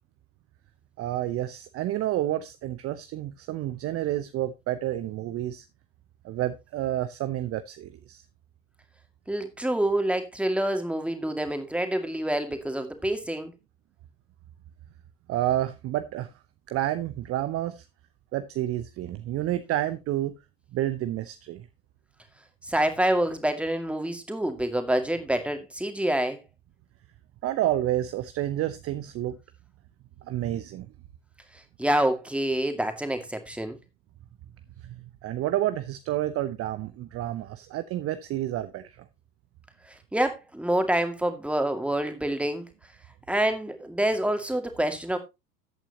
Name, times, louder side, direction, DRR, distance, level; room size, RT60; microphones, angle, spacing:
voice 1, 1.0-5.6 6.2-8.2 15.3-16.3 16.7-17.8 18.3-20.4 20.7-21.7 27.4-29.4 30.3-30.9 34.8-39.0, right 13 dB, 30° right, 0.8 m, -29 dB
voice 2, 9.3-13.5 22.6-26.4 31.8-33.8 40.1-42.7 43.3-45.2, right 1 dB, ahead, 2.1 m, -27 dB
14.0 x 8.6 x 2.9 m
figure-of-eight pair, 80°, 48 cm